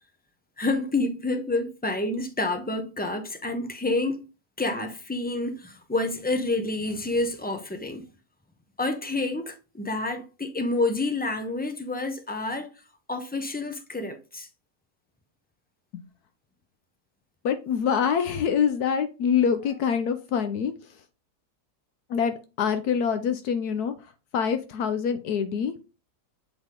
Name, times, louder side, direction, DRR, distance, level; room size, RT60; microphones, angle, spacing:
voice 1, 0.6-4.3 4.6-8.1 8.8-12.7 13.1-14.5, left 2 dB, 10° left, 0.4 m, -28 dB
voice 2, 17.4-20.7 22.1-23.9 24.3-25.7, left 7 dB, 75° left, 1.2 m, -25 dB
7.9 x 3.9 x 3.7 m
omnidirectional pair, 1.7 m